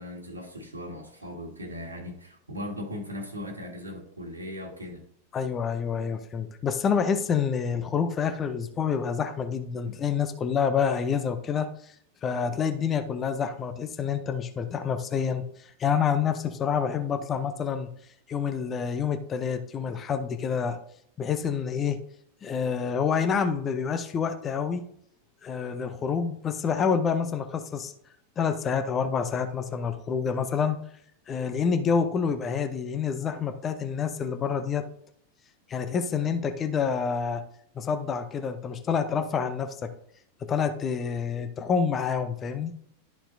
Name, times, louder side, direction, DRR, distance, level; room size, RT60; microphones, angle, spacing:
voice 1, 0.0-5.1 9.9-10.0, left 1 dB, 80° right, 1.8 m, -38 dB
voice 2, 5.3-11.9 12.2-17.9 18.3-20.8 21.2-22.0 22.4-24.8 25.4-27.9 28.4-30.8 31.3-34.8 35.7-37.4 37.8-39.9 40.4-42.7, left 6 dB, 25° left, 0.7 m, -28 dB
12.5 x 4.3 x 2.7 m
figure-of-eight pair, 90°, 0 cm